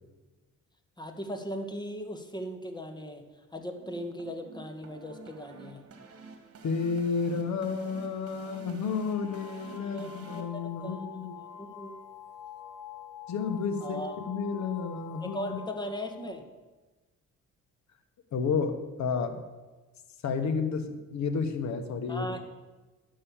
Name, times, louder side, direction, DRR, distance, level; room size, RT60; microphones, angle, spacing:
voice 1, 1.0-5.8 9.9-11.1 11.6-12.0 13.8-14.1 15.2-16.4 22.1-22.4, equal, 15° left, 6 dB, 1.4 m, -38 dB
sound 1, 3.5-10.4, right 4 dB, 50° right, 1.7 m, -50 dB
voice 2, 6.6-11.4 13.3-15.6 18.3-19.4 20.2-22.3, left 5 dB, 65° left, 8 dB, 1.2 m, -31 dB
sound 2, 8.9-16.4, left 8 dB, 85° left, 1.3 m, -46 dB
11.0 x 5.5 x 7.1 m, 1.2 s
cardioid pair, 90°, 30 cm